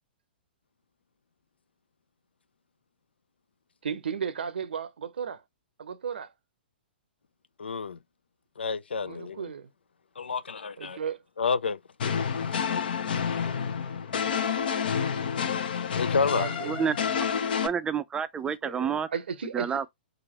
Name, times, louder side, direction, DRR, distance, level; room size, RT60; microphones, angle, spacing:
voice 1, 3.8-5.4 5.8-6.3 9.0-9.7 10.8-11.2 16.2-16.9 18.6-19.8, right 7 dB, 75° right, 0.6 m, -35 dB
voice 2, 7.6-8.0 8.6-9.5 10.2-11.0 11.4-12.1 12.4-12.6 15.9-16.5, left 5 dB, 85° left, 0.4 m, -30 dB
sound 1, 12.0-17.7, left 7 dB, 65° left, 0.8 m, -29 dB
voice 3, 17.6-19.1 19.5-19.9, right 7 dB, 15° right, 0.4 m, -29 dB
5.0 x 2.5 x 2.9 m
hypercardioid pair, 120°, 6 cm